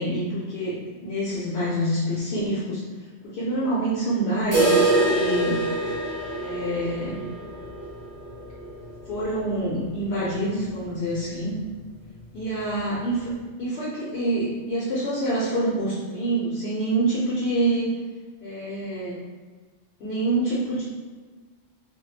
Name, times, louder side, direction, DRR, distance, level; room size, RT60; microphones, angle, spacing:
voice 1, 0.0-2.8 3.2-5.7 6.4-7.2 9.1-11.6 12.3-13.3 13.6-17.9 18.4-19.2 20.0-20.8, right 1 dB, 65° left, -7 dB, 0.8 m, -26 dB
sound 1, 4.5-10.3 10.6-10.7 11.1-11.2 11.7-11.8 12.6-12.7, right 2 dB, 20° right, 0.6 m, -25 dB
2.2 x 2.1 x 3.1 m, 1.4 s
omnidirectional pair, 1.2 m